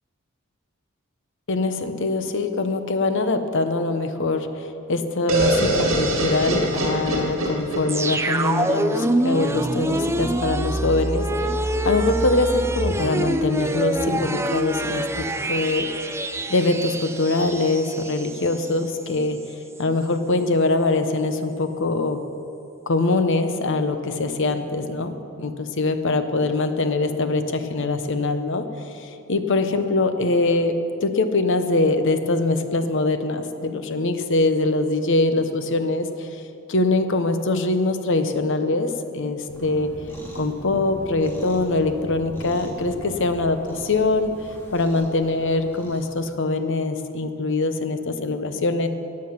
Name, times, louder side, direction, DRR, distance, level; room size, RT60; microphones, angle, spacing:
voice 1, 1.5-19.4 19.8-22.2 22.9-28.6 28.9-30.8 31.0-36.4 36.7-39.9 40.3-44.3 44.7-48.9, left 2 dB, 60° left, 9 dB, 0.9 m, -23 dB
sound 1, 5.3-9.1, right 1 dB, 65° right, 2.3 m, -24 dB
sound 2, 7.9-18.7 19.0-19.1, right 1 dB, 15° right, 0.4 m, -25 dB
Cat, 39.5-46.1, equal, 10° left, 2.1 m, -40 dB
15.0 x 9.8 x 5.8 m, 2.7 s
head